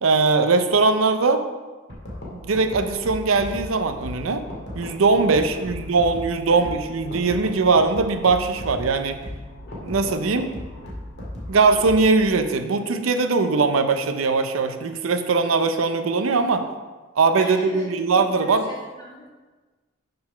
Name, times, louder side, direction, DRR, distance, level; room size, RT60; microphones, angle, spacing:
voice 1, 0.0-1.4 2.4-4.4 4.7-9.2 9.8-10.5 11.5-16.6 17.2-18.6, right 4 dB, 85° right, 8 dB, 0.6 m, -20 dB
sound 1, 1.9-12.3, left 1 dB, 55° left, 1.8 m, -36 dB
voice 2, 6.5-6.8 17.4-19.3, equal, 20° left, -6 dB, 2.0 m, -42 dB
6.6 x 4.0 x 5.7 m, 1.3 s
head